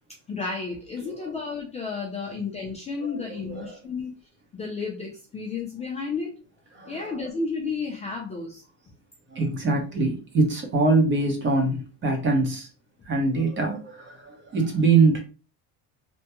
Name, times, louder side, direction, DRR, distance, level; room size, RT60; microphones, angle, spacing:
voice 1, 0.3-4.1 4.5-6.4 6.9-8.6, left 4 dB, 20° left, -1 dB, 0.4 m, -32 dB
voice 2, 3.0-3.8 6.7-7.2 9.3-12.7 13.1-15.2, right 3 dB, 30° right, 3 dB, 0.8 m, -24 dB
3.4 x 2.1 x 2.9 m, 0.33 s
cardioid pair, 150°, 38 cm